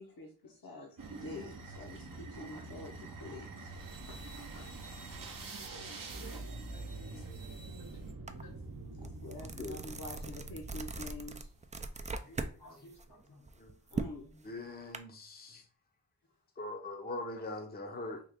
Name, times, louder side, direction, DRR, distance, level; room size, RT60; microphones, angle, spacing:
voice 1, 0.0-3.8 4.0-4.6 9.0-11.5 13.9-14.5, left 2 dB, 60° left, 0.9 m, -47 dB
sound 1, 1.0-11.6, right 3 dB, 55° right, 0.7 m, -45 dB
voice 2, 5.8-6.5 6.7-6.9 7.3-7.4 8.4-8.5 12.0-13.5, left 1 dB, 80° left, 1.3 m, -58 dB
sound 2, 8.3-8.4 8.8-12.6 12.9-15.0, right 3 dB, 20° right, 0.3 m, -40 dB
voice 3, 14.4-15.6 16.6-18.2, left 2 dB, 25° left, 0.6 m, -41 dB
3.6 x 2.3 x 3.5 m
wide cardioid pair, 45°, 40 cm